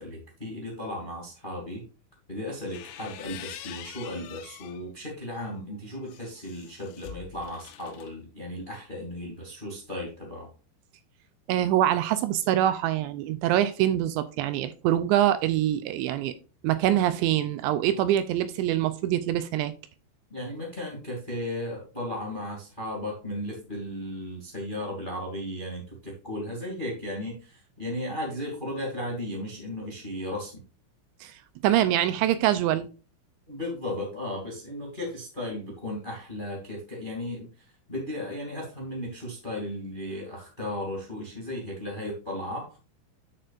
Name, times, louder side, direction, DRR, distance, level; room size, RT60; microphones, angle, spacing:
voice 1, 0.0-1.8 2.3-10.5 20.3-30.6 33.5-42.8, left 1 dB, 20° left, 1.3 m, -35 dB
sound 1, 2.5-4.8 5.3-8.1, left 11 dB, 80° left, 3.1 m, -45 dB
voice 2, 11.5-16.3 16.6-19.7 31.2-31.3 31.6-32.9, right 12 dB, 85° right, 2.6 m, -24 dB
10.0 x 6.7 x 2.5 m
omnidirectional pair, 5.6 m